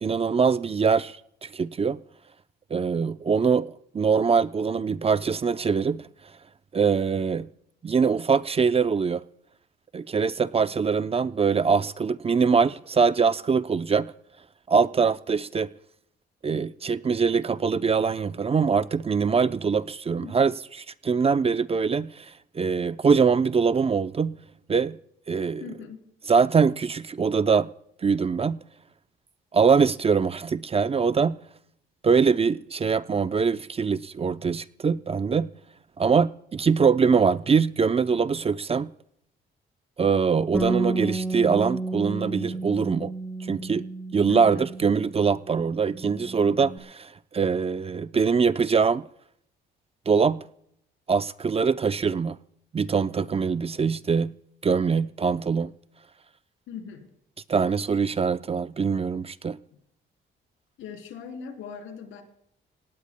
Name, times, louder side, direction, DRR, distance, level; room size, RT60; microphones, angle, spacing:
voice 1, 0.0-2.0 2.7-6.1 6.7-7.5 7.8-9.2 9.9-14.1 14.7-15.7 16.4-22.3 22.5-24.3 24.7-25.0 25.3-25.6 26.3-27.7 28.0-28.6 29.5-31.4 32.0-35.5 36.0-38.9 40.0-43.1 43.5-43.8 44.1-49.0 50.1-50.4 51.1-52.4 52.7-54.3 54.6-55.7 57.5-59.6, right 5 dB, 30° right, 0.6 m, -23 dB
voice 2, 25.6-26.0 44.3-44.7 56.7-57.1 60.8-62.2, left 7 dB, 85° left, 3.4 m, -39 dB
Bass guitar, 40.5-45.2 45.5-46.8, right 2 dB, 5° left, 1.7 m, -32 dB
28.0 x 18.0 x 2.2 m
cardioid pair, 90°, 20 cm